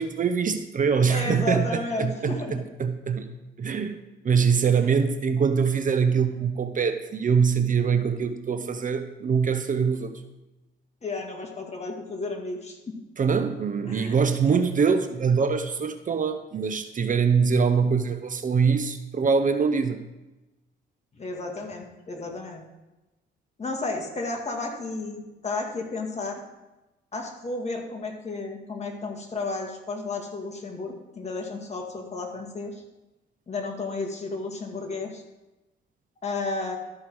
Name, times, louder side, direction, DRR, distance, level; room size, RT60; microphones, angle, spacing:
voice 1, 0.0-3.3 3.6-4.0 4.2-10.2 13.2-20.0, right 6 dB, 40° right, 9 dB, 0.7 m, -23 dB
voice 2, 1.1-2.5 4.8-5.0 11.0-13.0 13.9-14.3 21.2-22.6 23.6-26.4 27.1-32.8 33.5-35.2 36.2-36.8, left 3 dB, 35° left, 2 dB, 2.0 m, -32 dB
13.0 x 5.7 x 4.7 m, 1.0 s
cardioid pair, 90°, 20 cm